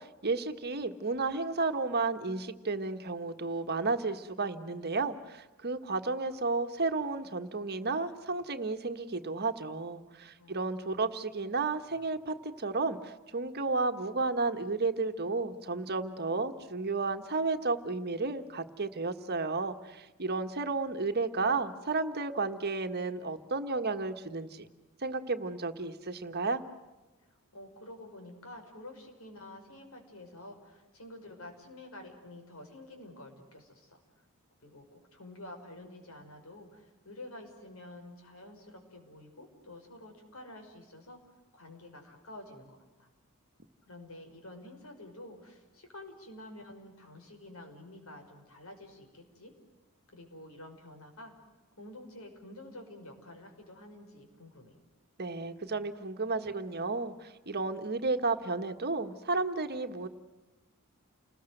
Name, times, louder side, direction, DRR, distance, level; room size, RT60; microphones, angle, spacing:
voice 1, 0.0-24.7 25.0-26.6 55.2-60.1, right 3 dB, 45° right, 7 dB, 1.6 m, -32 dB
voice 2, 10.4-11.1 27.5-34.0 34.6-41.2 41.5-43.1 43.9-49.5 50.1-51.3 51.8-54.8, left 1 dB, 70° left, 5 dB, 5.8 m, -49 dB
30.0 x 20.5 x 8.0 m, 1.2 s
head